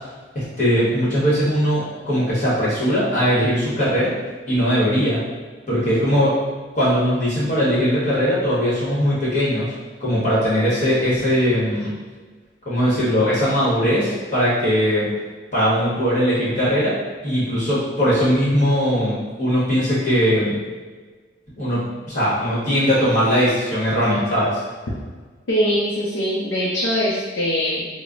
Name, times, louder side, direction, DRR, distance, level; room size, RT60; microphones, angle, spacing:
voice 1, 0.3-4.1 4.5-5.2 5.7-6.4 6.7-9.7 10.0-11.9 12.6-15.1 15.5-16.9 17.2-20.6 21.6-21.8 22.1-24.6, equal, 40° left, -9 dB, 1.2 m, -20 dB
voice 2, 25.5-27.9, equal, 85° left, -6 dB, 0.6 m, -22 dB
5.0 x 2.1 x 2.5 m, 1.4 s
head